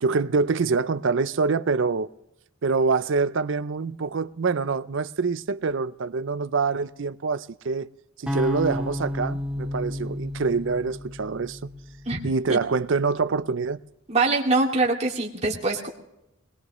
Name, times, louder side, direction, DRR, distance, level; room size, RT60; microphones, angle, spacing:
voice 1, 0.0-2.1 2.6-7.9 8.2-11.7 12.2-13.8, right 4 dB, 60° right, 0.5 m, -25 dB
sound 1, 8.3-12.4, left 1 dB, 5° right, 1.0 m, -32 dB
voice 2, 14.1-15.9, right 3 dB, 30° right, 2.3 m, -23 dB
21.0 x 20.5 x 3.1 m
head